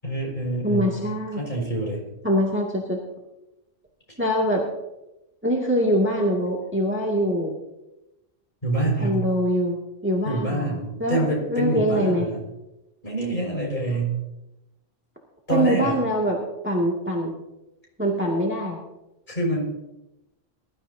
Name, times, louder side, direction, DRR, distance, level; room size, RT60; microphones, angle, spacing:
voice 1, 0.0-1.0 1.4-2.0 8.6-9.2 10.3-12.4 13.0-14.2 15.5-16.0 19.3-19.6, right 2 dB, 40° left, -3 dB, 5.6 m, -26 dB
voice 2, 0.6-1.4 2.2-3.0 4.2-4.6 5.4-7.5 9.0-12.3 15.5-17.3 18.0-18.8, equal, 10° right, -3 dB, 2.2 m, -24 dB
22.0 x 12.5 x 2.8 m, 0.96 s
omnidirectional pair, 1.3 m